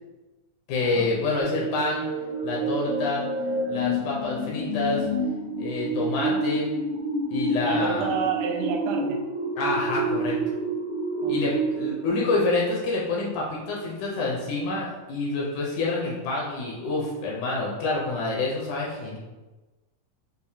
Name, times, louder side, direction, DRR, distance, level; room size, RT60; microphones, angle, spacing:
voice 1, 0.7-2.1 2.4-3.2 3.7-5.0 5.6-6.8 7.3-8.1 9.6-10.4 11.3-19.2, left 2 dB, 75° left, -4 dB, 2.0 m, -27 dB
sound 1, 1.4-12.1, right 1 dB, 65° right, 0.6 m, -28 dB
voice 2, 7.6-9.2 11.2-11.6, right 6 dB, 85° right, 3 dB, 2.2 m, -31 dB
6.5 x 2.6 x 2.8 m, 1.1 s
omnidirectional pair, 3.9 m